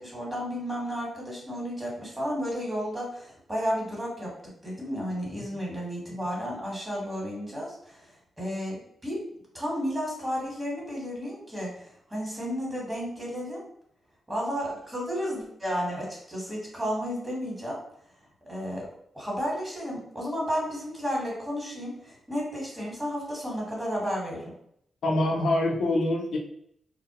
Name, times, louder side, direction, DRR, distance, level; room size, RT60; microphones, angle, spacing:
voice 1, 0.0-4.3 4.6-8.1 8.4-9.2 9.5-13.6 14.3-17.8 18.4-18.8 19.1-24.5, equal, 20° right, -3 dB, 1.5 m, -32 dB
voice 2, 25.0-26.4, left 1 dB, 75° left, -1 dB, 0.6 m, -25 dB
2.4 x 2.0 x 2.9 m, 0.70 s
supercardioid pair, 50°, 0 cm